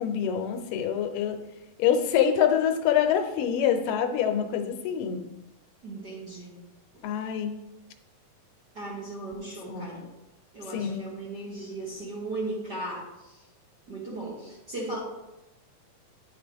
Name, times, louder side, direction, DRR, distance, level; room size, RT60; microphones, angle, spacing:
voice 1, 0.0-1.4 1.8-5.2 7.0-7.6 9.7-10.0 10.7-11.3, left 8 dB, 85° left, 6 dB, 2.3 m, -26 dB
voice 2, 5.8-6.6 8.7-10.1 10.5-13.4 13.9-15.0, right 2 dB, 40° right, -6 dB, 1.6 m, -37 dB
10.5 x 4.9 x 3.5 m, 1.0 s
omnidirectional pair, 3.8 m